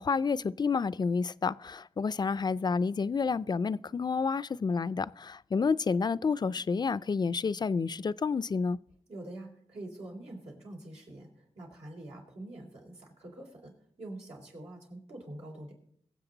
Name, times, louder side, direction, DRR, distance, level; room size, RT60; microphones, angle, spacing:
voice 1, 0.0-8.8, left 5 dB, 40° left, 0.4 m, -29 dB
voice 2, 9.1-15.7, right 1 dB, 80° right, 3.9 m, -45 dB
22.5 x 7.7 x 3.9 m
wide cardioid pair, 80°, 11 cm